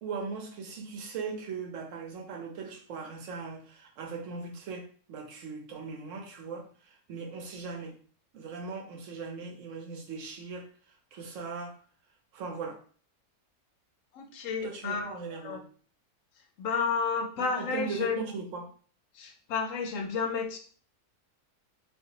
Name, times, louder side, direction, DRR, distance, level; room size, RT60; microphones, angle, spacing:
voice 1, 0.0-8.0 8.3-11.8 12.3-12.8 14.6-15.6 17.4-18.7, right 5 dB, 65° right, 3 dB, 1.0 m, -39 dB
voice 2, 14.1-15.6 16.6-18.2 19.2-20.6, left 5 dB, 65° left, 4 dB, 0.9 m, -31 dB
3.5 x 2.5 x 2.8 m, 0.43 s
omnidirectional pair, 1.6 m